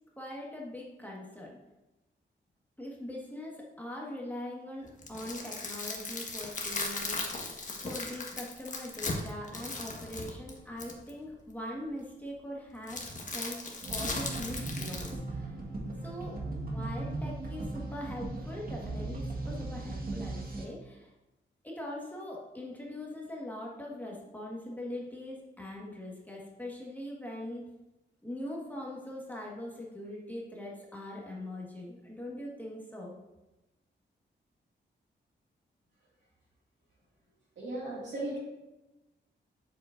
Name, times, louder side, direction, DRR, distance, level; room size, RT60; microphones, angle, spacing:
voice 1, 0.2-1.6 2.8-7.5 7.8-13.0 13.3-13.6 13.9-15.5 16.0-16.4 16.6-21.1 21.6-27.6 28.2-33.1, left 1 dB, 10° left, -3 dB, 1.5 m, -42 dB
sound 1, 4.9-11.1 12.9-15.1, left 3 dB, 40° left, 1.3 m, -37 dB
sound 2, 13.8-20.6, right 2 dB, 50° right, 1.5 m, -37 dB
voice 2, 37.6-38.4, right 2 dB, 70° right, -8 dB, 2.1 m, -36 dB
7.4 x 6.8 x 2.6 m, 1.0 s
cardioid pair, 70°, 20 cm